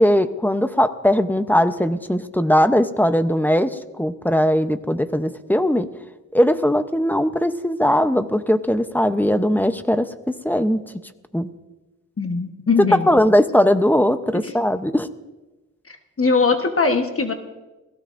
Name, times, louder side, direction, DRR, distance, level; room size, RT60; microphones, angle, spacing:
voice 1, 0.0-5.9 6.3-10.8 11.3-11.5 12.8-15.1, equal, 5° left, 9 dB, 0.7 m, -19 dB
voice 2, 12.2-13.1 15.9-17.3, left 4 dB, 45° left, 4 dB, 1.2 m, -21 dB
28.0 x 17.0 x 2.6 m, 1.1 s
wide cardioid pair, 105°, 32 cm